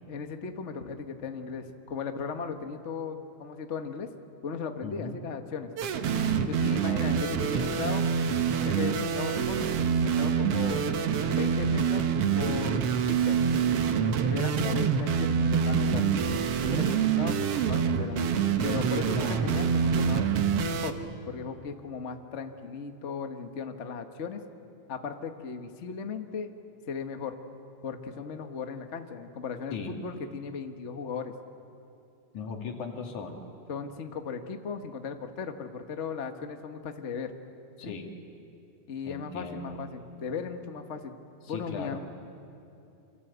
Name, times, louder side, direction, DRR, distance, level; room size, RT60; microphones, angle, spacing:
voice 1, 0.1-4.1 4.4-5.7 6.5-8.1 8.6-10.9 11.3-12.1 12.3-13.4 14.2-16.0 16.6-18.3 18.6-20.3 20.8-24.4 24.9-26.5 26.9-27.3 27.8-31.3 33.7-37.3 37.8-38.0 38.9-41.1 41.5-42.0, left 5 dB, 55° left, 6 dB, 0.8 m, -37 dB
voice 2, 4.8-5.2 6.6-7.8 14.3-14.7 19.1-19.6 29.7-30.0 32.3-33.4 37.8-38.1 39.1-39.8 41.4-42.0, left 4 dB, 75° left, 2 dB, 3.7 m, -39 dB
sound 1, 5.8-20.9, right 6 dB, 60° right, 1.9 m, -26 dB
26.5 x 26.0 x 8.1 m, 2.7 s
omnidirectional pair, 3.5 m